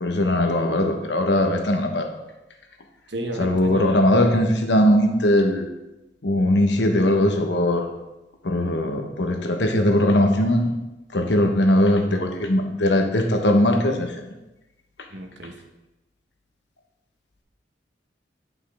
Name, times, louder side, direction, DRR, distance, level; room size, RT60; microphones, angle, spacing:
voice 1, 0.0-2.1 3.4-5.6 6.2-7.9 8.4-10.7 11.1-14.1, left 1 dB, 80° left, 4 dB, 1.1 m, -20 dB
voice 2, 3.1-4.0 15.1-15.5, right 1 dB, 80° right, 4 dB, 1.1 m, -32 dB
9.8 x 5.5 x 3.5 m, 0.99 s
head